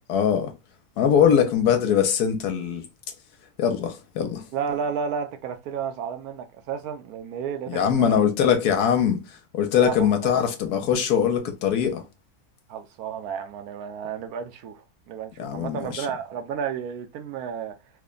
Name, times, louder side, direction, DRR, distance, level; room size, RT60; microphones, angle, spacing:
voice 1, 0.1-0.5 1.0-2.8 3.6-4.4 7.7-12.0 15.4-16.1, left 8 dB, 75° left, 1.2 m, -22 dB
voice 2, 4.5-8.2 9.8-10.3 12.7-17.8, right 7 dB, 75° right, 1.0 m, -32 dB
3.2 x 2.1 x 3.6 m
omnidirectional pair, 1.7 m